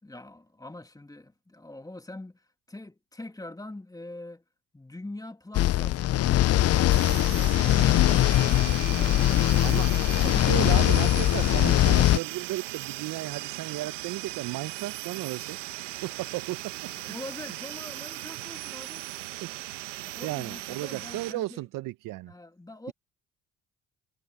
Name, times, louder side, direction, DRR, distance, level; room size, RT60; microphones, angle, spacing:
voice 1, 0.0-4.4 4.7-11.2 17.0-19.1 20.0-21.6 22.3-22.9, left 2 dB, 10° left, 2.4 m, -44 dB
sound 1, 5.5-12.2, left 14 dB, 45° left, 0.5 m, -22 dB
sound 2, 6.9-21.3, right 18 dB, 90° right, 1.2 m, -38 dB
voice 2, 10.2-15.6 15.9-16.7 17.0-17.1 19.4-19.5 19.9-22.3, right 18 dB, 65° right, 0.9 m, -34 dB
sound 3, 11.9-12.7, left 32 dB, 80° left, 6.5 m, -60 dB
hypercardioid pair, 60°, 35 cm